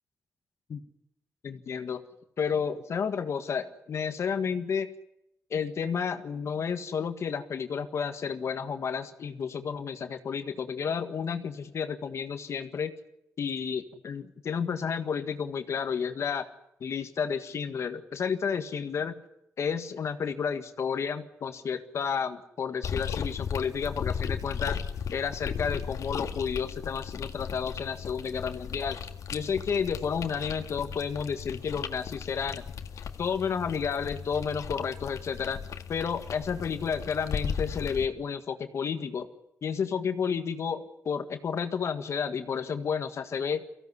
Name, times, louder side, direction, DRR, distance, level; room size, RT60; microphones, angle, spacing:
voice 1, 1.4-2.0 2.4-4.9 5.5-12.9 13.4-16.5 16.8-19.1 19.6-24.8 25.1-29.0 29.3-32.7 33.2-35.6 35.9-39.3 39.6-43.6, left 6 dB, 60° left, 8 dB, 1.7 m, -31 dB
sound 1, 22.8-38.1, left 7 dB, 80° left, 1.9 m, -36 dB
24.0 x 16.5 x 9.7 m, 0.84 s
wide cardioid pair, 140°, 5 cm